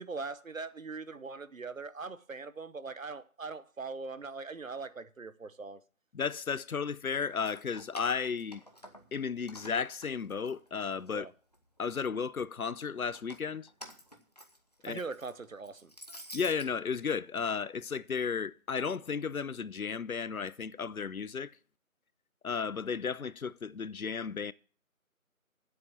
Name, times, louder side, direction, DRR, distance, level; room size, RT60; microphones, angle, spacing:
voice 1, 0.0-5.8 11.1-11.3 14.9-15.9, right 4 dB, 70° right, 1.0 m, -41 dB
voice 2, 6.1-8.6 9.1-11.3 11.8-13.7 14.8-15.0 16.3-21.5 22.4-24.5, left 6 dB, 85° left, 0.7 m, -34 dB
Keys jangling, 7.3-9.2 9.5-11.1 11.5-12.3 13.0-16.7, equal, 30° left, 1.0 m, -51 dB
8.4 x 7.6 x 8.6 m
figure-of-eight pair, 170°, 42 cm